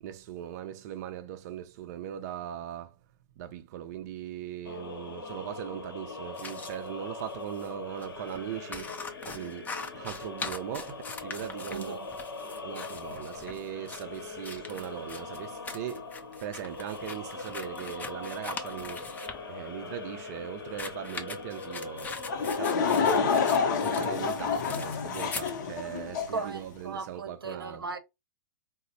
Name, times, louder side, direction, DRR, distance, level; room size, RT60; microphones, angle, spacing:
voice 1, 0.0-2.9 3.4-8.9 9.2-9.7 9.9-12.0 12.6-16.0 16.4-19.1 19.5-27.8, right 10 dB, 45° right, 0.4 m, -39 dB
sound 1, 4.6-23.4, left 3 dB, 85° left, 0.8 m, -41 dB
sound 2, 6.3-6.8 7.6-7.7 8.0-8.1 8.3-19.4 20.6-25.6, left 4 dB, 15° left, 0.4 m, -41 dB
voice 2, 11.7-12.1 26.3-28.0, right 4 dB, 90° right, 0.6 m, -37 dB
Laughter / Crowd, 22.3-26.5, left 5 dB, 55° left, 0.7 m, -28 dB
3.9 x 2.0 x 2.6 m
hypercardioid pair, 120°, 12 cm